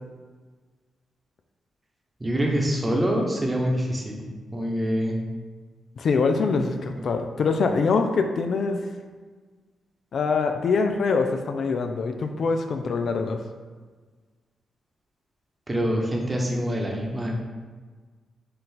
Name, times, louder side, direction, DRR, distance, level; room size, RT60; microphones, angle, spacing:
voice 1, 2.2-4.3 4.5-5.2 15.7-17.3, equal, 25° right, -1 dB, 1.0 m, -25 dB
voice 2, 6.0-8.8 10.1-13.4, left 4 dB, 65° left, 6 dB, 0.3 m, -24 dB
4.4 x 2.5 x 3.8 m, 1.4 s
supercardioid pair, 45°, 0 cm